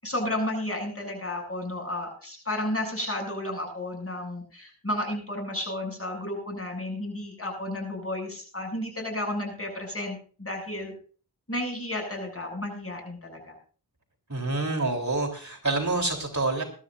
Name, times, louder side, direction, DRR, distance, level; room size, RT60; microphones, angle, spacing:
voice 1, 0.0-10.9 11.5-13.5, left 1 dB, 35° left, 1 dB, 7.4 m, -32 dB
voice 2, 14.3-16.6, right 2 dB, 45° right, 1 dB, 3.6 m, -27 dB
21.5 x 13.0 x 2.6 m, 0.40 s
wide cardioid pair, 50°, 38 cm